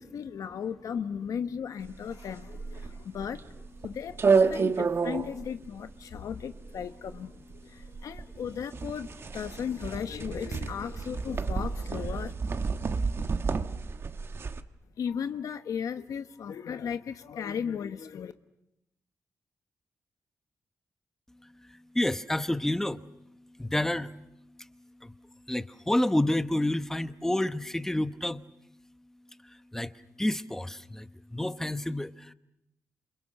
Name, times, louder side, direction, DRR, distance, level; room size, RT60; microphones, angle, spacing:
voice 1, 0.0-12.3 15.0-18.3, left 7 dB, 85° left, 1.1 m, -36 dB
sound 1, 1.8-14.6, right 5 dB, 45° right, 1.3 m, -30 dB
voice 2, 12.8-13.2 21.4-23.3 23.6-24.2 24.6-24.7 25.0-25.1 25.5-28.4 29.4-29.9 30.2-32.3, left 1 dB, 5° left, 0.9 m, -30 dB
28.5 x 28.0 x 6.5 m
wide cardioid pair, 130°, 6 cm